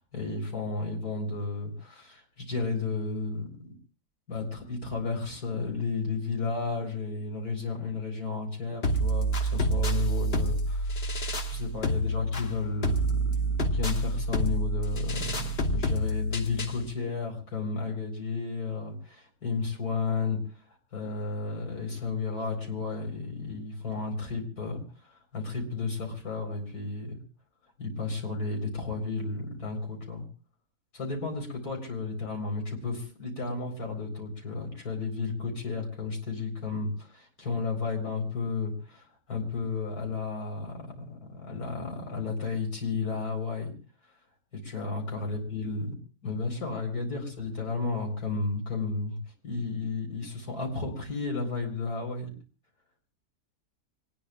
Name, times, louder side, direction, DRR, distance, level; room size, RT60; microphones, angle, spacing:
voice 1, 0.0-3.7 4.3-20.4 20.9-27.2 27.8-30.2 30.9-43.7 44.6-45.9 46.2-49.2 49.4-52.3, left 4 dB, 75° left, 2 dB, 4.8 m, -33 dB
sound 1, 8.8-16.8, right 1 dB, 45° left, 1.4 m, -28 dB
26.0 x 19.5 x 2.4 m, 0.36 s
omnidirectional pair, 1.6 m